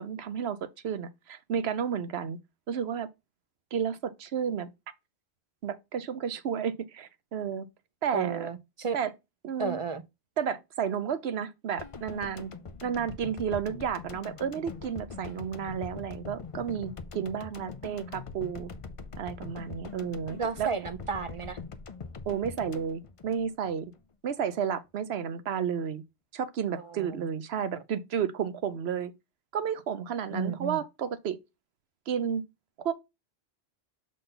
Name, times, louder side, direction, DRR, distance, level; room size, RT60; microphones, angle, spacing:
voice 1, 0.0-2.4 2.7-3.1 3.7-4.7 5.6-7.7 8.0-8.5 8.9-9.1 9.4-9.8 10.4-12.5 12.8-18.7 19.2-20.7 22.3-23.9 24.2-26.0 26.3-29.1 29.5-31.4 32.1-32.4 32.8-32.9, right 8 dB, 75° right, 0.9 m, -32 dB
voice 2, 8.1-9.0 9.6-10.0 20.4-21.6 26.7-27.2 30.3-30.8, right 5 dB, 35° right, 0.6 m, -33 dB
sound 1, 11.8-24.0 24.2-24.4, left 4 dB, 40° left, 0.5 m, -43 dB
6.7 x 3.9 x 3.8 m
omnidirectional pair, 1.1 m